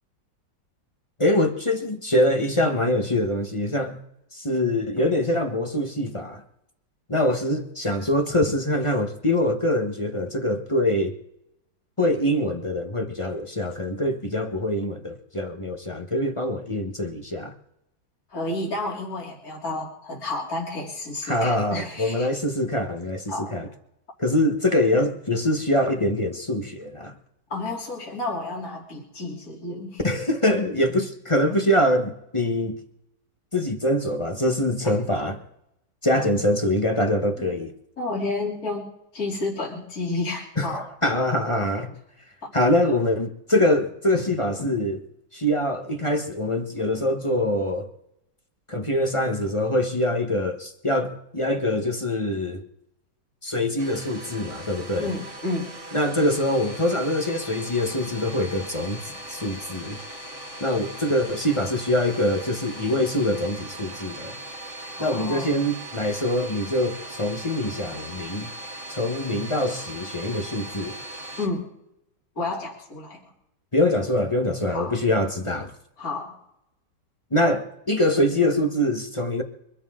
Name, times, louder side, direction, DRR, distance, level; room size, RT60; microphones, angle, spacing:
voice 1, 1.2-4.0 4.3-6.4 7.1-11.1 12.0-17.5 21.2-23.7 24.2-27.1 30.0-32.8 33.5-35.4 36.0-37.7 40.6-41.9 42.5-45.0 45.3-47.9 48.7-52.6 53.4-55.1 55.9-60.0 60.6-64.4 65.0-68.5 68.9-71.0 73.7-75.7 77.3-79.4, left 1 dB, 20° left, 1.2 m, -24 dB
voice 2, 18.3-22.3 23.3-23.5 27.5-30.0 34.8-35.0 36.1-36.3 37.4-37.5 38.0-40.9 41.6-41.7 42.4-42.5 55.0-55.7 65.0-65.5 71.4-71.7 72.4-73.2 74.7-75.0 76.0-76.4, left 2 dB, 55° left, 3.8 m, -31 dB
Domestic sounds home sounds, 53.8-71.5, right 1 dB, 45° right, 2.0 m, -39 dB
24.0 x 13.0 x 3.8 m
omnidirectional pair, 1.9 m